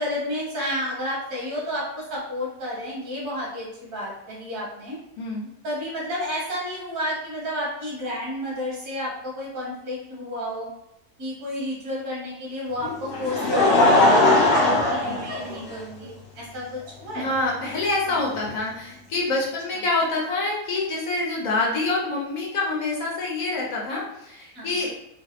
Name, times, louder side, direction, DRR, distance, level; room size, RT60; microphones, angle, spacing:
voice 1, 0.0-5.0 5.6-10.7 11.2-17.3 24.5-24.7, left 1 dB, 80° right, -5 dB, 1.8 m, -31 dB
voice 2, 5.2-5.5 17.1-25.0, left 2 dB, 65° left, -3 dB, 1.2 m, -26 dB
Laughter, 12.8-16.0 16.9-17.0 18.4-18.5, left 2 dB, 50° left, 0.8 m, -19 dB
3.9 x 2.0 x 2.8 m, 0.83 s
omnidirectional pair, 1.6 m